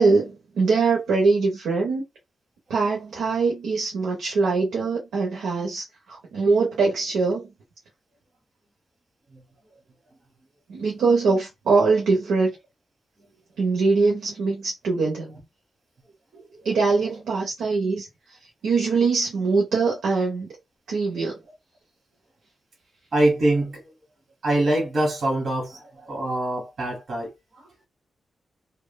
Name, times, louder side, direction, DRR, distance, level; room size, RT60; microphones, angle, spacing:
voice 1, 0.0-2.0 2.7-7.5 10.7-12.6 13.6-15.4 16.6-18.4 18.6-20.5 20.9-21.4, right 4 dB, 90° right, 0.6 m, -22 dB
voice 2, 23.1-23.8 24.4-27.3, right 1 dB, 60° right, 1.1 m, -23 dB
3.0 x 2.1 x 2.2 m
cardioid pair, 55°, 0 cm